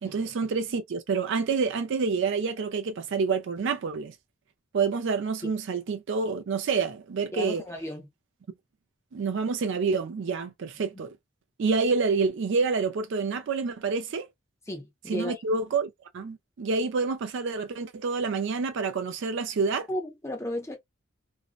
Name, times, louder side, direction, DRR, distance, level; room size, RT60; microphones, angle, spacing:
voice 1, 0.0-4.1 4.7-7.6 9.1-11.1 11.6-14.3 15.1-19.9, right 4 dB, 55° right, 0.4 m, -28 dB
voice 2, 7.3-8.1 14.7-15.4 19.9-20.8, left 1 dB, 15° left, 0.6 m, -34 dB
2.5 x 2.1 x 2.3 m
head